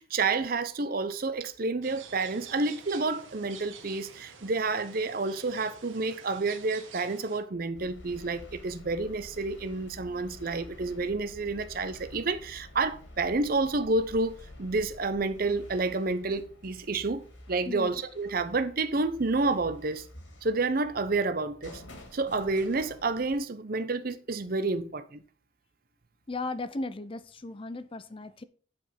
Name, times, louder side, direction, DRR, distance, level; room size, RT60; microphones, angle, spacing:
voice 1, 0.0-20.1 20.4-21.8 22.1-25.2, right 3 dB, 45° right, 0.7 m, -29 dB
sound 1, 1.8-7.4, right 6 dB, 80° right, 1.6 m, -49 dB
sound 2, 7.7-23.4, left 1 dB, 70° left, 2.8 m, -50 dB
voice 2, 26.3-28.4, left 2 dB, 25° left, 0.5 m, -36 dB
9.6 x 5.1 x 5.6 m
head